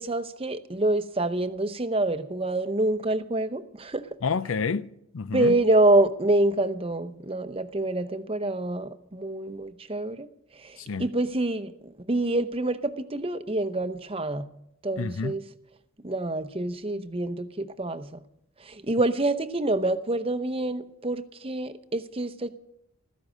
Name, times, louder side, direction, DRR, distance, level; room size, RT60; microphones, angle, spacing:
voice 1, 0.0-4.1 5.3-10.3 10.6-14.5 14.8-15.4 16.0-18.2 18.6-22.5, right 2 dB, 25° right, 0.7 m, -26 dB
voice 2, 4.2-5.6 10.8-11.1 15.0-15.4, left 5 dB, 65° left, 0.5 m, -29 dB
15.5 x 13.5 x 6.3 m
head